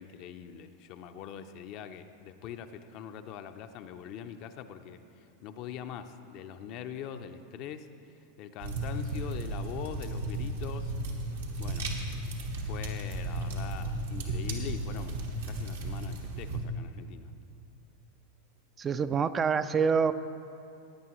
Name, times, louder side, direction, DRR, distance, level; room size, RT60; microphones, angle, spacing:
voice 1, 0.0-7.9 8.4-10.9 11.6-11.9 12.6-17.3, left 8 dB, 50° left, 8 dB, 0.6 m, -43 dB
sound 1, 8.6-16.6, right 1 dB, 80° right, 1.4 m, -34 dB
voice 2, 18.8-20.1, right 6 dB, 25° right, 12 dB, 0.3 m, -26 dB
16.5 x 9.2 x 3.1 m, 2.8 s
hypercardioid pair, 95°, 0 cm